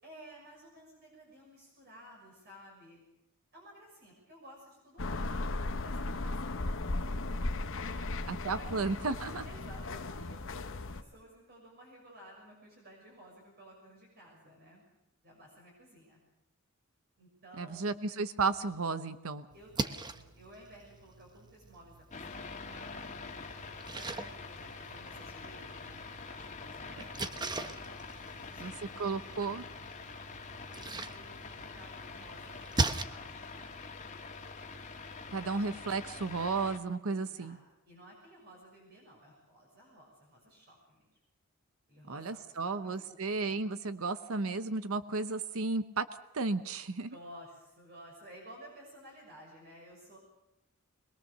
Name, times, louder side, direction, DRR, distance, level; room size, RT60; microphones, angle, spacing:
voice 1, 0.0-3.0 3.5-7.1 7.8-8.7 9.4-14.8 15.2-16.2 17.2-18.0 19.5-23.3 23.9-27.4 28.2-29.4 30.7-33.9 37.1-41.1 41.9-43.2 47.1-50.2, equal, 50° right, -1 dB, 6.3 m, -55 dB
sound 1, 5.0-11.0, left 2 dB, 65° left, 1.0 m, -36 dB
voice 2, 8.3-9.4 17.6-19.5 28.6-29.6 35.3-37.6 42.1-46.1 46.3-47.1, right 3 dB, 70° right, 11 dB, 0.9 m, -33 dB
Splash splatter, 19.5-33.0, right 2 dB, 20° right, 0.9 m, -40 dB
sound 2, 22.1-36.8, left 4 dB, 35° left, 2.1 m, -45 dB
22.5 x 21.5 x 6.7 m, 0.89 s
head